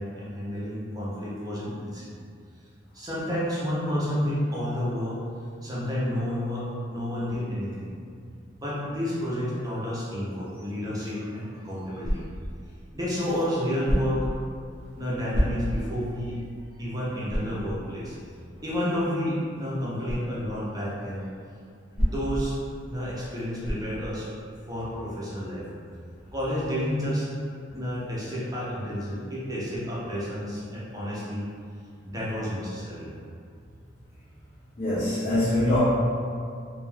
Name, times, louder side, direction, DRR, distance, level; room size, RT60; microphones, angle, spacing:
voice 1, 0.0-2.1 2.9-5.2 5.6-7.9 8.6-12.2 12.9-14.3 15.0-16.4 16.8-18.1 18.6-21.3 22.1-22.6 22.9-24.3 24.7-25.7 26.3-27.3 27.7-31.4 32.0-33.1, equal, 20° right, -8 dB, 0.6 m, -30 dB
sound 1, 12.0-12.5 13.8-14.3 15.3-15.9 16.4-16.5 17.3-17.6 20.0-20.3 21.9-22.5 23.6-24.0, equal, 55° right, 0.8 m, -27 dB
voice 2, 34.8-35.8, left 1 dB, 35° left, -11 dB, 0.5 m, -24 dB
2.3 x 2.2 x 3.2 m, 2.3 s
head